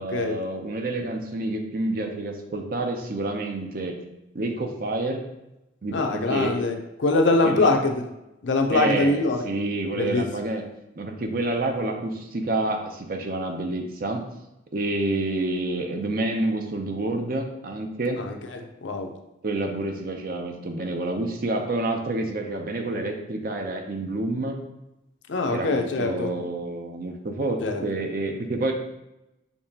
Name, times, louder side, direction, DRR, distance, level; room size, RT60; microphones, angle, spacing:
voice 1, 0.0-4.0 4.3-5.2 5.8-6.6 7.4-7.7 8.7-10.6 11.0-14.2 14.7-18.2 19.4-24.6 25.5-28.7, right 2 dB, 50° right, 4 dB, 0.6 m, -28 dB
voice 2, 5.9-8.0 8.4-9.4 9.9-10.3 18.2-19.1 25.3-26.3 27.6-27.8, left 2 dB, 75° left, 4 dB, 0.5 m, -23 dB
6.7 x 2.8 x 2.8 m, 0.92 s
head